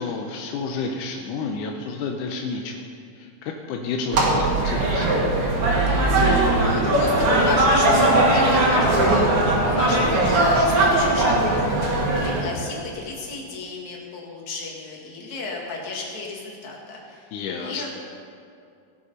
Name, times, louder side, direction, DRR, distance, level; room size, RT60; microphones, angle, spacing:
voice 1, 0.0-2.8 3.1-5.1 8.9-9.2 17.3-17.9, left 4 dB, 75° left, 2 dB, 2.0 m, -30 dB
sound 1, 4.1-12.4, right 1 dB, 45° right, 2.3 m, -19 dB
voice 2, 6.3-11.6 11.9-17.3 17.6-17.9, left 3 dB, 55° left, -2 dB, 3.0 m, -33 dB
17.0 x 8.2 x 5.5 m, 2.4 s
omnidirectional pair, 4.2 m